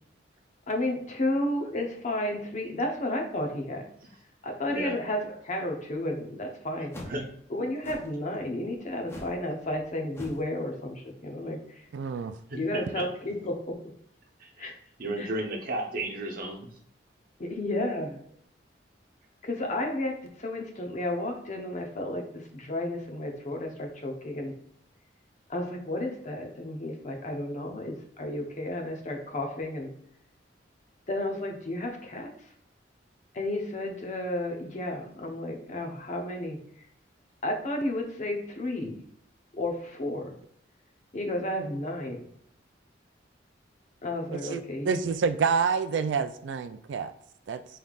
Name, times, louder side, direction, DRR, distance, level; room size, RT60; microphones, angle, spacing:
voice 1, 0.7-3.8 4.4-7.0 7.5-11.9 12.6-13.7 14.6-14.7 15.2-15.3 17.4-18.2 19.4-24.5 25.5-29.9 31.1-32.3 33.3-36.6 37.4-39.0 39.5-40.3 41.1-42.3 44.0-45.0, left 1 dB, 40° left, 2 dB, 0.8 m, -32 dB
sound 1, 6.9-7.2 7.8-8.2 9.1-9.4 9.7-9.9 10.1-10.5, left 1 dB, 15° left, 0.6 m, -42 dB
voice 2, 11.9-12.3 44.3-47.1 47.5-47.6, right 5 dB, 75° right, 10 dB, 0.3 m, -28 dB
voice 3, 12.5-13.1 14.4-14.7 15.0-16.7, right 1 dB, 55° right, 1 dB, 1.0 m, -33 dB
5.4 x 3.3 x 2.4 m, 0.69 s
head